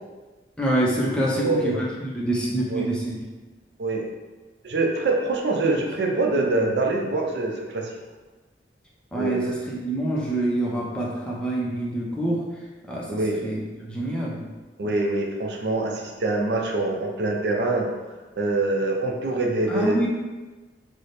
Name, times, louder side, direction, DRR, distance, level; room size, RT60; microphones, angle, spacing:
voice 1, 0.6-3.2 5.6-5.7 6.3-6.7 9.1-12.4 12.9-14.4 19.7-20.1, right 1 dB, 5° left, -5 dB, 0.5 m, -26 dB
voice 2, 1.3-1.8 2.7-2.9 3.8-4.0 4.6-7.9 9.1-9.6 13.1-13.4 14.8-17.9 18.4-20.1, right 2 dB, 65° right, 1 dB, 0.5 m, -24 dB
3.3 x 2.0 x 4.0 m, 1.2 s
head